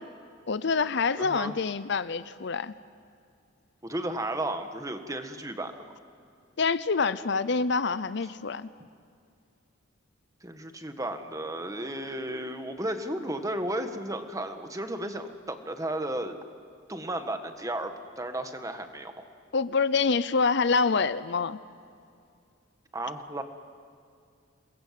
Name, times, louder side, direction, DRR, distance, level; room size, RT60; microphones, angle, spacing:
voice 1, 0.5-2.7 6.6-8.7 19.5-21.6, left 4 dB, 60° left, 15 dB, 0.7 m, -26 dB
voice 2, 1.2-1.5 3.8-5.8 10.4-16.4 16.9-19.1 22.9-23.4, right 1 dB, 15° right, 7 dB, 1.6 m, -34 dB
28.0 x 22.5 x 7.7 m, 2.4 s
head